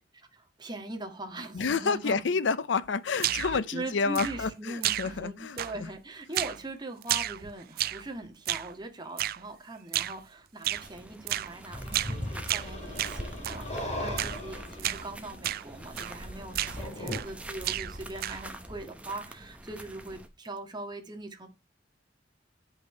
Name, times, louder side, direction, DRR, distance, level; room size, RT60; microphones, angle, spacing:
voice 1, 0.3-2.2 3.7-21.5, right 2 dB, 25° right, 1.7 m, -41 dB
voice 2, 1.5-5.9, left 5 dB, 75° left, 0.5 m, -29 dB
sound 1, 3.2-3.6 4.1-4.6 4.8-5.3 5.6-6.0 6.3-6.6 7.0-8.1 8.5-8.7 9.2-9.4 9.9-10.2 10.6-10.9 11.3-11.5 11.9-12.2 12.5-13.6 14.2-14.4 14.8-15.1 15.4-15.7 16.0-16.2 16.5-17.4 17.6-18.5, right 13 dB, 55° right, 0.4 m, -32 dB
sound 2, 10.7-20.3, right 1 dB, 5° right, 1.0 m, -46 dB
sound 3, 11.7-17.2, left 1 dB, 35° left, 2.7 m, -38 dB
9.4 x 5.6 x 4.4 m
head